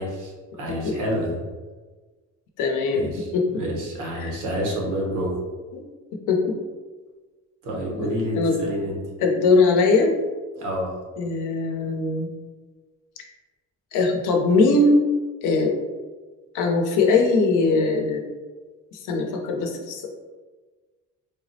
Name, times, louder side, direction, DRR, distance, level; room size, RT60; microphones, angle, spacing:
voice 1, 0.0-1.4 2.9-5.4 7.6-9.0 10.6-10.9, equal, 85° right, -2 dB, 0.9 m, -28 dB
voice 2, 2.6-3.1 3.3-3.6 4.2-4.3 5.7-5.8 6.3-6.6 8.0-8.6 9.2-10.1 11.2-12.3 13.9-15.0 15.4-15.7 16.5-18.2 18.9-20.1, left 3 dB, 85° left, 2 dB, 0.6 m, -21 dB
3.4 x 2.0 x 2.6 m, 1.3 s
cardioid pair, 90°, 30 cm